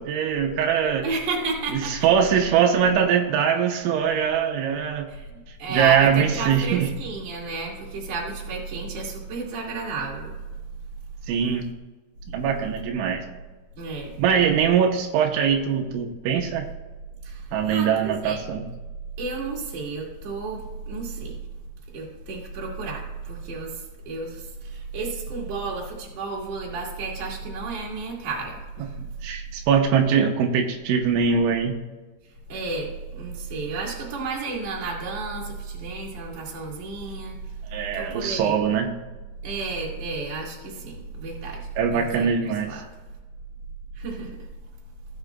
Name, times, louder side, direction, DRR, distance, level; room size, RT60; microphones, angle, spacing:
voice 1, 0.0-1.1 1.7-5.1 5.7-6.9 11.3-11.7 12.3-13.2 14.2-16.7 17.5-18.6 29.0-31.7 37.7-38.9 41.8-42.8, right 7 dB, 85° right, 3 dB, 3.2 m, -22 dB
voice 2, 1.0-1.9 5.1-5.3 5.6-10.3 12.5-12.6 13.8-14.2 17.2-18.4 19.2-21.4 21.9-28.9 32.5-37.4 37.9-38.6 39.4-41.6 41.9-42.3 42.7-42.8 44.0-44.3, right 3 dB, 40° right, -2 dB, 2.8 m, -32 dB
16.5 x 7.5 x 2.4 m, 1.2 s
omnidirectional pair, 5.4 m